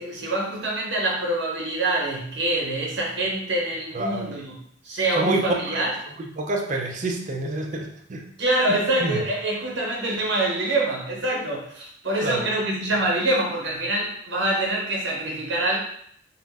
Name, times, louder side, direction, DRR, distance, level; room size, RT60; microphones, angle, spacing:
voice 1, 0.0-4.6 4.8-5.9 8.4-15.8, right 1 dB, 65° right, -2 dB, 0.8 m, -25 dB
voice 2, 3.9-4.3 5.1-5.4 5.7-5.8 6.3-8.2 8.7-9.2 12.2-12.5, right 2 dB, 40° right, 2 dB, 0.4 m, -28 dB
2.5 x 2.0 x 3.4 m, 0.67 s
head